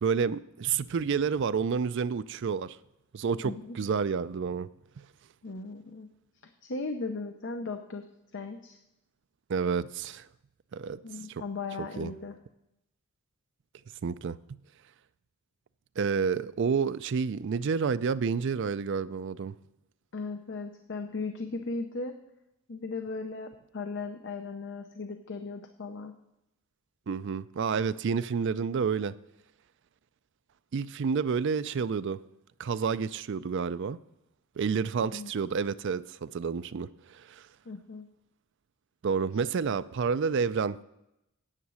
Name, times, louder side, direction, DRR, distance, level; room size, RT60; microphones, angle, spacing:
voice 1, 0.0-2.8 3.1-4.7 9.5-10.3 10.7-11.0 11.3-11.4 12.0-12.1 14.0-14.4 16.0-19.5 27.1-29.2 30.7-32.2 32.6-34.0 34.6-37.4 39.0-40.8, right 5 dB, 55° right, 0.4 m, -29 dB
voice 2, 3.4-3.8 5.4-6.1 6.6-8.1 8.3-8.8 11.0-12.4 20.1-22.1 22.7-26.1 35.0-35.3 37.7-38.1, left 3 dB, 55° left, 0.7 m, -37 dB
9.9 x 8.2 x 6.3 m
head